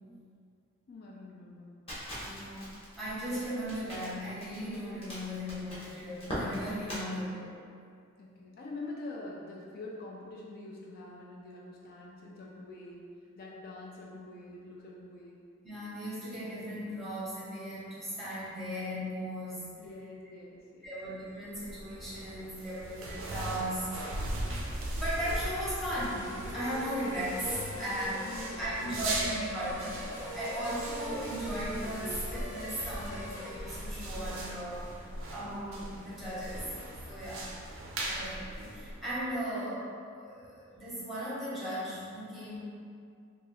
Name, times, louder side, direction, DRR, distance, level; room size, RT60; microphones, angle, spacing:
voice 1, 0.9-1.7 8.2-13.1 13.4-15.3 19.8-21.0 27.7-29.2 30.4-30.6, left 2 dB, 45° left, -3 dB, 0.3 m, -45 dB
Crackle, 1.9-7.0, equal, 25° left, 0.9 m, -41 dB
voice 2, 2.2-2.7 3.0-7.5 15.6-19.7 20.8-24.3 25.0-28.1 28.6-34.9 35.3-36.7 37.1-37.5 38.0-42.6, equal, ahead, -11 dB, 0.8 m, -37 dB
sound 1, 21.5-39.3, right 1 dB, 70° right, 0.4 m, -39 dB
sound 2, 25.2-33.5, left 1 dB, 85° left, 1.1 m, -43 dB
3.0 x 2.3 x 2.9 m, 2.3 s
head